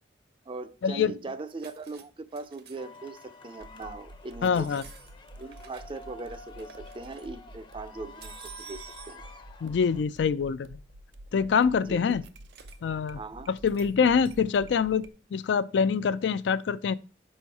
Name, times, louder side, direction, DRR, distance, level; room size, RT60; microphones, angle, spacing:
voice 1, 0.5-4.8 5.4-9.2 11.8-12.2 13.1-13.5, right 3 dB, 30° right, 0.4 m, -40 dB
sound 1, 1.3-2.0 2.3-3.0 3.5-3.7 4.5-6.0 6.3-7.3 8.2-9.2 12.5-12.8 13.7-13.9 14.2-14.4, right 8 dB, 60° right, 0.9 m, -50 dB
sound 2, 2.8-10.0, left 3 dB, 25° left, 0.6 m, -50 dB
sound 3, 3.6-15.1, right 1 dB, 90° right, 0.6 m, -49 dB
voice 2, 4.4-4.8 9.6-10.7 11.3-12.2 12.8-13.2 13.5-15.0 15.3-16.9, left 6 dB, 70° left, 0.3 m, -25 dB
5.4 x 4.3 x 4.6 m
head